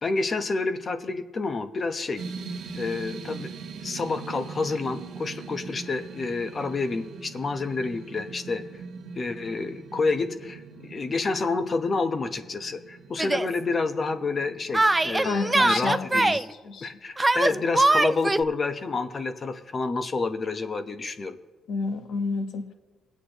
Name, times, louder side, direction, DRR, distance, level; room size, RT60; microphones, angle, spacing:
voice 1, 0.0-2.2 2.7-3.5 3.8-8.6 9.1-16.4 16.8-21.4, left 3 dB, 40° left, 8 dB, 1.0 m, -29 dB
sound 1, 2.2-15.6, right 5 dB, 75° right, 1.2 m, -41 dB
Yell, 13.2-13.5 14.7-16.4 17.2-18.4, right 2 dB, 15° right, 0.3 m, -22 dB
voice 2, 15.2-16.9 21.7-22.7, left 4 dB, 70° left, 6 dB, 1.3 m, -30 dB
24.0 x 8.3 x 3.0 m, 1.3 s
cardioid pair, 90°, 0 cm